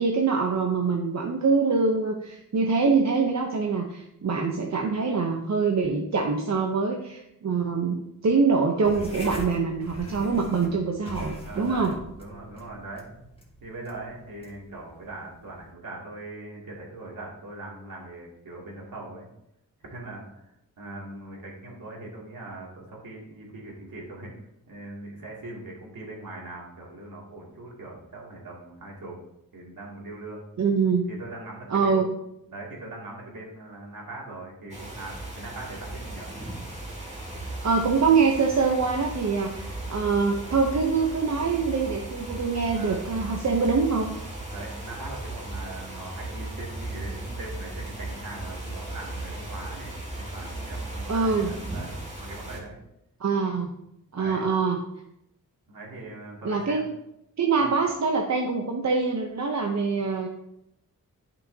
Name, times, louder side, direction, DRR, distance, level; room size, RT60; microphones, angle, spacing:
voice 1, 0.0-11.9 30.6-31.0 31.7-32.1 37.6-44.2 51.1-51.5 53.2-53.7 54.1-54.8 56.4-56.8 57.4-60.3, right 4 dB, 50° right, 2 dB, 0.8 m, -24 dB
sound 1, 8.8-15.7, left 1 dB, 15° left, 1.5 m, -42 dB
voice 2, 11.4-13.1 13.6-19.3 19.8-20.3 20.8-24.3 24.7-29.2 29.5-30.5 31.1-32.0 32.5-36.3 42.7-43.0 44.5-52.8 54.2-54.5 55.7-56.8 57.6-57.7, right 2 dB, 70° right, -3 dB, 2.5 m, -41 dB
sound 2, 34.7-52.6, right 2 dB, 20° right, 2.0 m, -37 dB
11.0 x 5.6 x 2.8 m, 0.81 s
wide cardioid pair, 125°, 35 cm